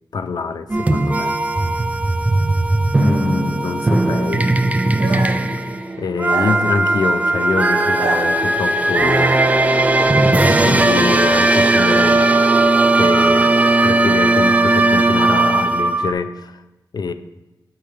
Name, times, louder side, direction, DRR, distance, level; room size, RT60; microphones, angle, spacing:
voice 1, 0.1-1.3 3.0-4.5 6.0-9.4 10.3-12.3 12.9-13.5 13.8-16.6 16.9-17.1, left 4 dB, 60° left, 10 dB, 0.4 m, -24 dB
sound 1, 0.7-16.1, right 2 dB, 20° right, 0.3 m, -17 dB
sound 2, 5.0-5.5 6.2-7.2 7.8-8.8, right 3 dB, 80° right, 0.7 m, -28 dB
7.7 x 4.4 x 3.4 m, 1.0 s
wide cardioid pair, 90°, 8 cm